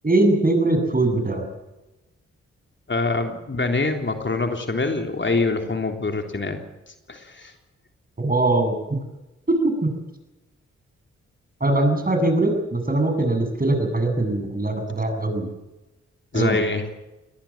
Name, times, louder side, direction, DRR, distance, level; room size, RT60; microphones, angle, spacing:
voice 1, 0.0-1.4 8.2-9.0 9.5-9.9 11.6-15.5 16.3-16.6, right 2 dB, 30° right, 5 dB, 7.9 m, -21 dB
voice 2, 2.9-6.6 7.1-7.5 16.3-16.9, left 3 dB, 40° left, 4 dB, 3.6 m, -24 dB
22.5 x 19.0 x 7.4 m, 1.0 s
supercardioid pair, 45°, 29 cm